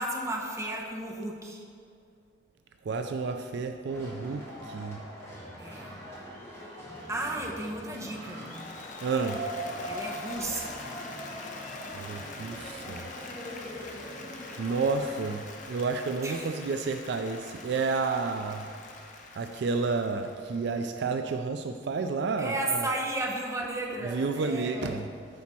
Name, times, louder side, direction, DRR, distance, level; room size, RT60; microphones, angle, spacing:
voice 1, 0.0-1.6 5.6-6.0 7.1-8.5 9.9-10.9 16.2-16.5 18.0-18.1 22.4-25.0, right 2 dB, 15° right, -1 dB, 0.9 m, -34 dB
voice 2, 2.9-5.0 9.0-9.4 11.9-13.1 14.6-18.6 19.4-22.9 24.0-25.1, right 4 dB, 60° right, 6 dB, 0.3 m, -30 dB
sound 1, 3.9-15.4, right 1 dB, 15° left, 1.4 m, -42 dB
Applause, 8.1-21.3, left 3 dB, 40° left, 0.7 m, -44 dB
8.4 x 4.1 x 6.1 m, 2.3 s
head